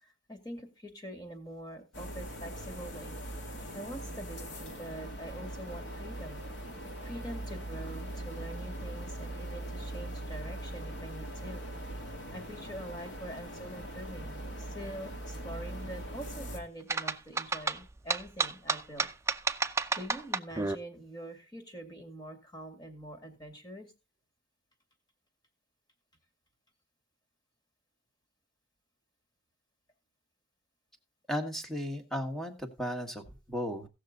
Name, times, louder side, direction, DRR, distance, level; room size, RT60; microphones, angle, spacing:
voice 1, 0.0-3.2 3.7-6.4 7.0-11.7 12.3-19.1 19.9-23.9, right 1 dB, 20° left, 4 dB, 2.5 m, -44 dB
sound 1, 1.9-16.6, right 1 dB, 60° left, 2.3 m, -41 dB
sound 2, 16.9-20.8, right 4 dB, 15° right, 0.5 m, -31 dB
voice 2, 31.3-33.9, equal, ahead, 4 dB, 1.6 m, -35 dB
17.0 x 6.6 x 3.9 m, 0.29 s
head